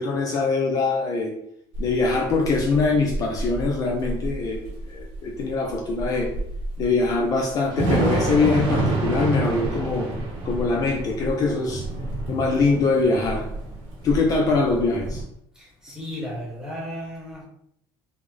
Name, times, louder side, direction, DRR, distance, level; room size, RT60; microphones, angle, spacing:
voice 1, 0.0-1.3 1.8-6.3 6.8-10.1 10.4-11.8 12.3-13.5 14.0-15.2, left 3 dB, 40° left, 0 dB, 0.5 m, -23 dB
Thunder / Rain, 1.7-15.2, right 2 dB, 65° right, 1.0 m, -29 dB
voice 2, 15.5-17.4, equal, 5° right, -4 dB, 1.1 m, -34 dB
3.3 x 2.1 x 3.4 m, 0.74 s
cardioid pair, 155°, 10 cm